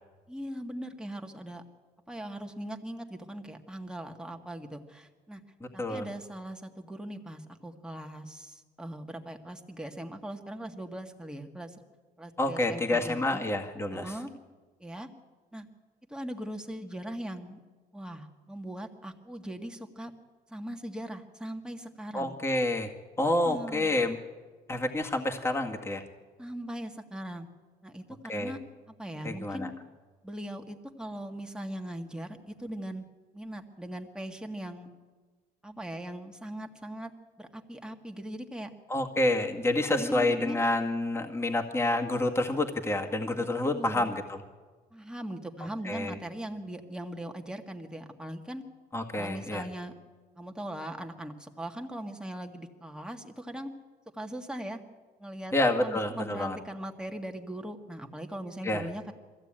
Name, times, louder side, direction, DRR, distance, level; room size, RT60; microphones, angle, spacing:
voice 1, 0.3-1.6 2.1-5.4 5.7-11.8 12.2-13.5 13.9-14.3 14.8-15.1 15.5-15.7 16.1-17.6 17.9-20.1 20.5-22.3 23.4-24.0 26.4-27.5 27.8-28.0 28.3-28.6 28.9-29.7 30.2-33.0 33.3-34.9 35.6-37.1 37.4-38.7 39.9-40.6 43.4-44.1 44.9-48.6 49.2-49.9 50.4-53.7 54.1-54.8 55.2-55.5 55.8-59.1, right 1 dB, 5° right, 3 dB, 1.9 m, -40 dB
voice 2, 5.6-6.1 12.4-14.2 22.1-22.9 23.2-24.2 24.7-26.0 28.3-28.6 29.2-29.7 38.9-44.4 45.8-46.2 48.9-49.7 55.5-56.6 58.6-58.9, left 2 dB, 15° left, 2 dB, 1.9 m, -28 dB
22.0 x 15.0 x 8.9 m, 1.4 s
cardioid pair, 110°, 17 cm